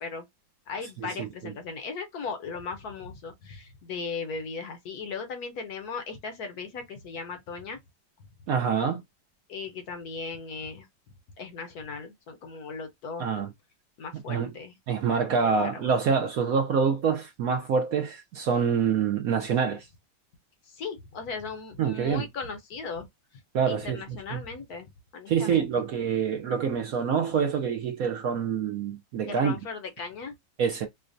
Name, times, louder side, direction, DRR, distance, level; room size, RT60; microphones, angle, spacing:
voice 1, 0.7-7.8 9.5-10.9 11.4-13.3 14.0-14.8 15.4-15.9 20.6-23.1 23.7-25.8 29.3-30.3, left 4 dB, 65° left, 1.1 m, -37 dB
voice 2, 8.5-9.0 13.2-13.5 14.3-14.5 14.9-19.9 21.8-22.2 23.5-24.0 24.3-24.4 25.3-29.6 30.6-30.9, right 6 dB, 75° right, 0.8 m, -26 dB
4.8 x 2.2 x 2.6 m
omnidirectional pair, 2.1 m